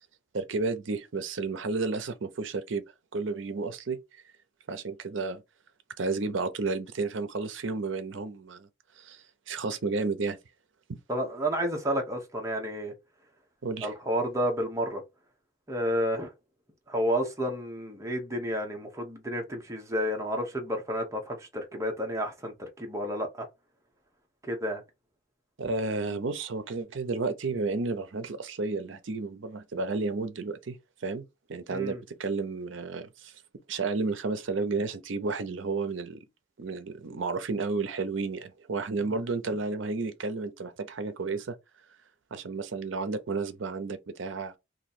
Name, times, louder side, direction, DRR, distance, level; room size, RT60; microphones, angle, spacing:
voice 1, 0.3-2.8 3.1-4.0 4.7-5.4 6.0-8.7 9.0-10.4 10.9-11.0 13.6-13.9 25.6-31.2 31.5-33.3 33.7-36.2 36.6-41.6 42.3-44.6, right 3 dB, 75° right, 0.6 m, -32 dB
voice 2, 11.1-12.9 13.8-15.0 15.7-16.3 16.9-23.5 24.4-24.8 31.7-32.0, equal, 15° right, 0.9 m, -31 dB
3.0 x 2.7 x 4.1 m
head